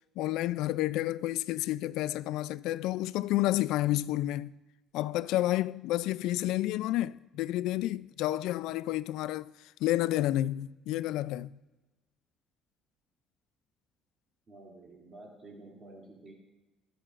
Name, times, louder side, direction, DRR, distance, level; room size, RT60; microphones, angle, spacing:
voice 1, 0.2-4.6 4.9-9.5 9.8-11.6, left 15 dB, 80° left, 0.3 m, -30 dB
voice 2, 14.5-16.3, right 2 dB, 30° right, 2.7 m, -50 dB
21.0 x 13.0 x 2.5 m
cardioid pair, 170°, 0 cm